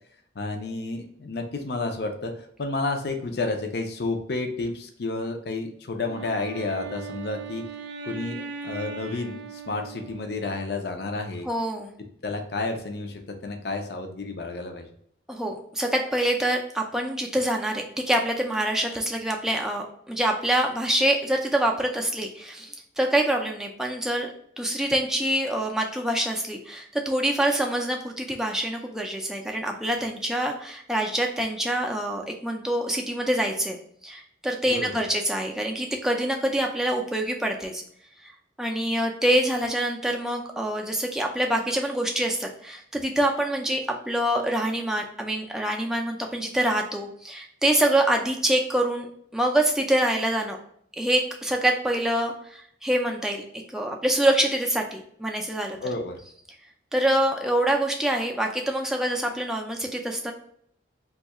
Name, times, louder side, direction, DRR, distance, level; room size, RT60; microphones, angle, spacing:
voice 1, 0.4-7.6 8.0-11.5 12.2-14.9 34.7-35.0 55.8-56.2, left 3 dB, 60° left, 5 dB, 0.5 m, -31 dB
Wind instrument woodwind instrument, 6.0-10.8, right 5 dB, 70° right, 0.4 m, -39 dB
voice 2, 11.4-11.9 15.3-33.8 34.0-37.8 38.6-49.1 49.3-50.6 51.0-55.8 56.9-60.3, right 1 dB, 5° right, 1 dB, 0.4 m, -25 dB
2.7 x 2.3 x 4.1 m, 0.65 s
head